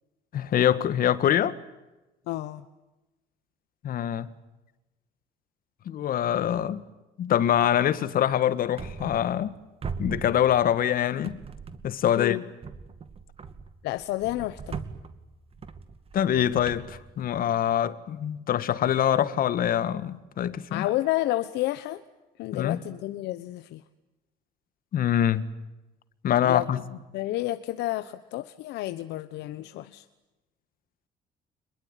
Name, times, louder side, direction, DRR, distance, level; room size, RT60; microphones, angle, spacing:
voice 1, 0.3-1.6 3.8-4.3 5.9-6.8 7.2-9.6 10.0-11.4 11.8-12.4 16.1-20.9 22.5-22.8 24.9-25.5 26.2-26.8, left 10 dB, 60° left, 1.8 m, -24 dB
voice 2, 2.3-2.6 12.1-12.5 13.8-14.8 20.7-22.0 22.4-23.8 26.4-30.0, left 16 dB, 85° left, 1.1 m, -30 dB
sound 1, 8.8-9.5 9.8-10.9 11.2-12.1 12.6-17.7, right 5 dB, 35° right, 2.3 m, -40 dB
26.5 x 22.0 x 9.3 m
cardioid pair, 110°, 17 cm